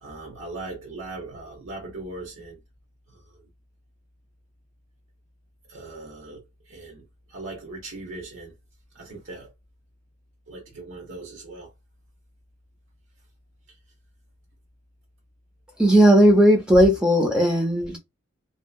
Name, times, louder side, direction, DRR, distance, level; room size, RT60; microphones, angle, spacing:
voice 1, 0.0-2.6 3.1-3.2 5.7-8.5 8.9-9.5 10.5-11.7, right 2 dB, 85° right, 0.9 m, -39 dB
voice 2, 15.8-18.0, equal, 5° right, 0.7 m, -16 dB
2.8 x 2.3 x 2.3 m
head